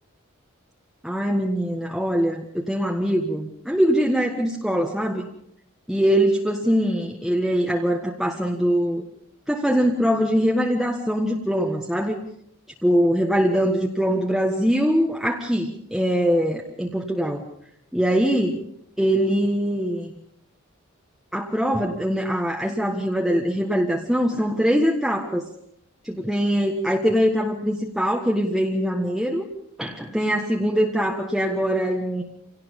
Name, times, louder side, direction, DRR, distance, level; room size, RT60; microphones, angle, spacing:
voice 1, 1.0-5.3 5.9-9.0 9.5-12.2 12.8-17.4 17.9-18.6 19.0-20.2 21.3-25.4 26.0-29.4 29.8-32.2, equal, ahead, -1 dB, 1.5 m, -22 dB
26.5 x 18.0 x 5.4 m, 0.70 s
head